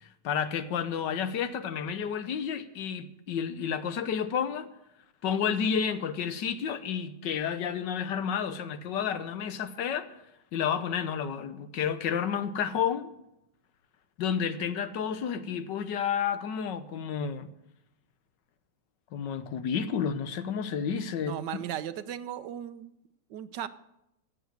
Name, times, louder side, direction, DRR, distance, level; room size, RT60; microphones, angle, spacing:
voice 1, 0.0-4.7 5.2-10.1 10.5-13.1 14.2-17.5 19.1-21.6, left 7 dB, 85° left, 1.6 m, -31 dB
voice 2, 21.2-22.9 23.3-23.7, right 10 dB, 80° right, 1.4 m, -36 dB
15.0 x 8.3 x 8.8 m
omnidirectional pair, 1.9 m